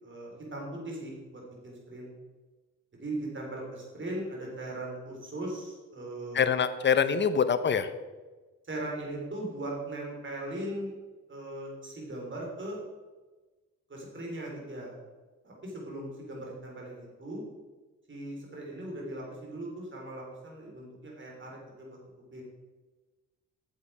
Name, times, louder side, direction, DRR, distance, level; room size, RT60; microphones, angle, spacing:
voice 1, 0.0-2.1 3.0-6.4 8.6-10.9 11.3-12.8 13.9-14.9 15.4-17.4 18.1-22.0 22.3-22.4, right 1 dB, 35° right, -2 dB, 3.6 m, -39 dB
voice 2, 6.3-7.9, left 7 dB, 35° left, 12 dB, 0.7 m, -25 dB
8.7 x 7.4 x 4.9 m, 1.2 s
cardioid pair, 90°, 32 cm